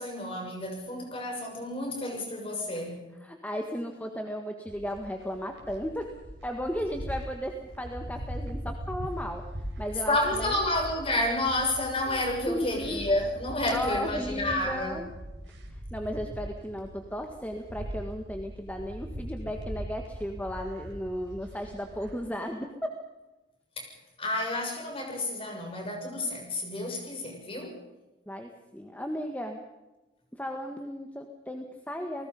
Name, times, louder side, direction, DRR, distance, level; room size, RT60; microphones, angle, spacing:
voice 1, 0.0-3.1 10.1-15.0 23.8-23.9 24.2-27.7, left 1 dB, 30° left, 2 dB, 6.8 m, -30 dB
voice 2, 3.2-6.1 6.4-9.4 9.8-10.6 12.1-13.0 13.7-15.1 15.7-22.9 25.4-25.6 26.4-26.5 28.3-29.6 30.3-32.3, equal, 10° left, 4 dB, 1.7 m, -35 dB
sound 1, 4.6-22.2, equal, 70° right, 5.8 m, -41 dB
30.0 x 19.5 x 5.5 m, 1.1 s
head